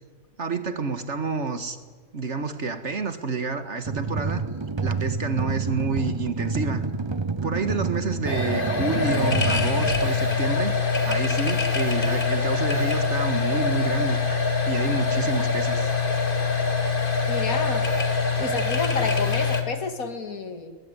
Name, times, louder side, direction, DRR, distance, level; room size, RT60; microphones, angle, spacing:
voice 1, 0.4-1.8 2.1-4.4 4.8-6.8 7.4-10.7 11.1-14.2 14.6-15.9, right 4 dB, 50° right, 10 dB, 2.0 m, -29 dB
sound 1, 3.8-10.7, right 4 dB, 30° right, 0.5 m, -29 dB
sound 2, 8.3-19.6, left 4 dB, 35° left, 2.5 m, -24 dB
voice 2, 17.3-17.9 18.4-20.8, left 4 dB, 70° left, 9 dB, 2.5 m, -30 dB
22.0 x 20.0 x 9.8 m, 1.5 s
omnidirectional pair, 1.6 m